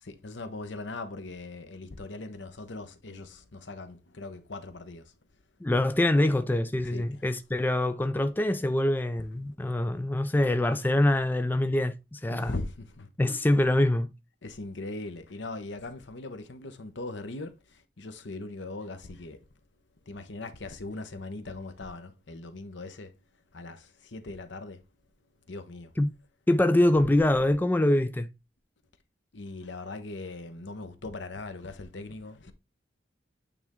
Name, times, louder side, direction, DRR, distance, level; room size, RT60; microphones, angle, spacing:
voice 1, 0.1-5.1 6.8-7.2 10.2-10.3 12.3-13.1 14.4-19.5 20.1-23.1 23.5-24.8 25.5-25.9 29.3-32.5, left 2 dB, 75° left, 0.9 m, -40 dB
voice 2, 5.6-12.5 13.2-14.1 26.0-26.1 26.5-28.3, left 1 dB, 10° left, 0.3 m, -24 dB
8.8 x 3.4 x 3.6 m
head